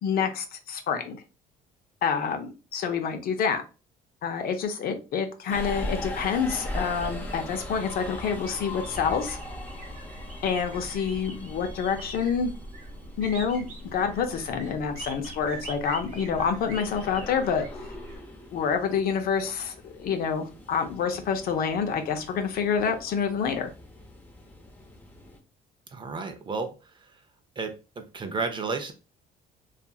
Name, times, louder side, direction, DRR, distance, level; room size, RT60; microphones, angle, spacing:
voice 1, 0.0-1.2 2.0-3.6 4.2-9.4 10.4-12.5 13.2-17.6 18.5-23.7, left 6 dB, 65° left, 6 dB, 0.6 m, -27 dB
Subway metro underground, 5.5-25.4, left 1 dB, 10° left, 0.6 m, -41 dB
sound 1, 5.9-18.2, right 1 dB, 45° right, 1.0 m, -42 dB
voice 2, 25.9-26.7 27.6-27.7 28.1-28.9, right 4 dB, 30° right, 7 dB, 0.5 m, -31 dB
2.7 x 2.4 x 2.3 m, 0.32 s
cardioid pair, 110°, 17 cm